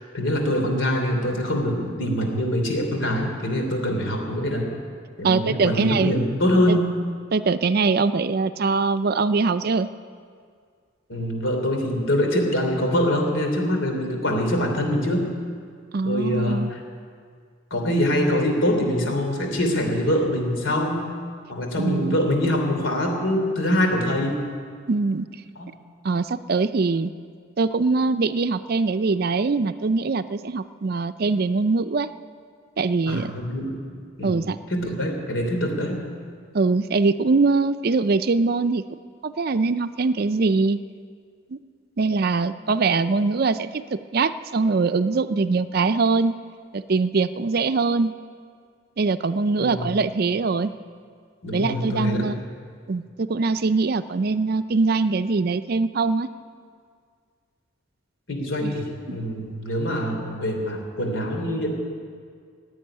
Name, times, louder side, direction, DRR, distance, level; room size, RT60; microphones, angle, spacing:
voice 1, 0.1-4.7 5.2-7.0 11.1-15.3 16.0-16.8 17.7-21.1 21.5-24.4 25.6-25.7 33.1-33.8 34.2-34.4 34.7-36.1 49.6-49.9 51.4-52.3 58.3-61.7, equal, 75° left, 3 dB, 3.1 m, -24 dB
voice 2, 5.2-6.1 6.7-6.8 7.3-9.9 15.9-16.7 21.8-22.2 24.9-25.3 26.0-27.1 27.6-32.1 32.8-33.3 34.2-34.6 36.5-38.8 39.2-40.8 41.5-41.6 42.0-46.4 46.7-48.1 49.0-50.7 51.5-52.4 52.9-56.3 58.6-58.8 59.1-59.2, right 4 dB, 50° right, 12 dB, 0.5 m, -22 dB
16.5 x 8.5 x 10.0 m, 2.1 s
head